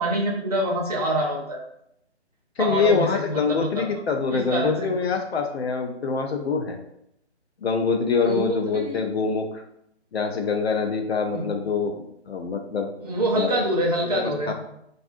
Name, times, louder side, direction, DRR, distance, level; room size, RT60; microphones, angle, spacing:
voice 1, 0.0-1.6 2.6-3.9 4.3-4.9 8.2-9.0 11.3-11.4 13.0-14.5, right 1 dB, 35° right, -2 dB, 0.6 m, -26 dB
voice 2, 2.6-6.8 7.6-9.6 10.1-12.0 12.3-12.9 13.3-13.6 14.0-14.5, left 5 dB, 65° left, 4 dB, 0.5 m, -25 dB
2.4 x 2.4 x 2.5 m, 0.75 s
hypercardioid pair, 160°, 35 cm